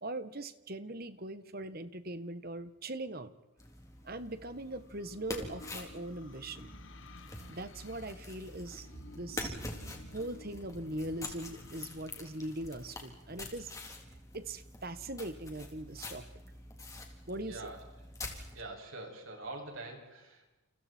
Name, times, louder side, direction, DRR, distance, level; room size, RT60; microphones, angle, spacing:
voice 1, 0.0-3.3 4.0-6.7 7.5-8.9 9.1-9.6 10.1-13.7 14.3-16.2 17.3-17.7 18.3-18.5, right 1 dB, 45° right, 12 dB, 1.6 m, -41 dB
sound 1, 3.6-18.6, left 2 dB, 15° left, 3.7 m, -46 dB
sound 2, 4.0-13.6, left 2 dB, 60° left, 1.4 m, -54 dB
voice 2, 17.4-17.8 18.5-20.5, right 2 dB, 65° right, 1 dB, 7.8 m, -44 dB
30.0 x 29.5 x 4.6 m, 1.1 s
head